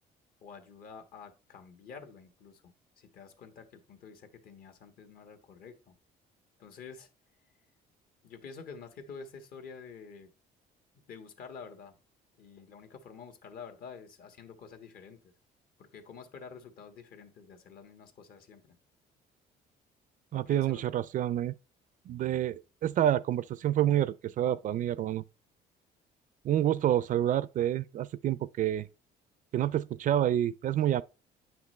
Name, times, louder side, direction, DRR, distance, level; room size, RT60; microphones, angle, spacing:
voice 1, 0.4-5.9 6.6-7.1 8.2-10.3 11.1-11.9 12.4-15.2 15.8-18.7 20.3-20.9, left 5 dB, 60° left, 1.4 m, -49 dB
voice 2, 20.3-21.5 22.1-25.2 26.4-28.9 29.5-31.0, right 11 dB, 50° right, 0.4 m, -28 dB
9.2 x 6.0 x 3.2 m
cardioid pair, 110°, 17 cm